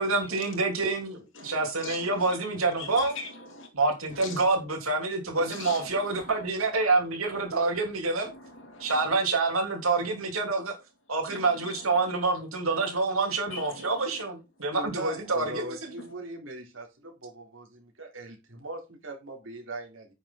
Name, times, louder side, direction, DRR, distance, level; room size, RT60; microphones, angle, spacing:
voice 1, 0.0-3.2 3.7-8.3 8.8-10.7 11.1-15.8, right 3 dB, 90° right, 3.2 m, -27 dB
voice 2, 1.3-2.4 2.8-3.7 4.1-4.5 5.4-6.4 8.2-9.2 11.3-12.1 12.7-12.9 13.5-14.2 16.0-16.1, left 4 dB, 65° left, 2.6 m, -43 dB
voice 3, 14.7-20.1, right 2 dB, 70° right, 3.4 m, -40 dB
10.0 x 7.2 x 3.9 m
head